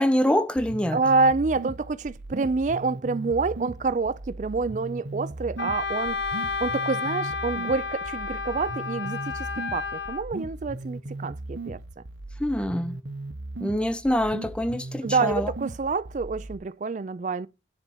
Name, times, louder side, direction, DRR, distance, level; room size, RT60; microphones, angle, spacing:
voice 1, 0.0-1.0 12.4-13.0 13.6-15.5, left 1 dB, 5° left, 0.5 m, -25 dB
sound 1, 0.6-16.6, right 2 dB, 85° right, 1.1 m, -38 dB
voice 2, 0.9-11.8 15.0-17.5, right 4 dB, 45° right, 0.4 m, -27 dB
Wind instrument woodwind instrument, 5.6-10.2, left 5 dB, 75° left, 1.0 m, -31 dB
9.9 x 4.4 x 6.1 m
head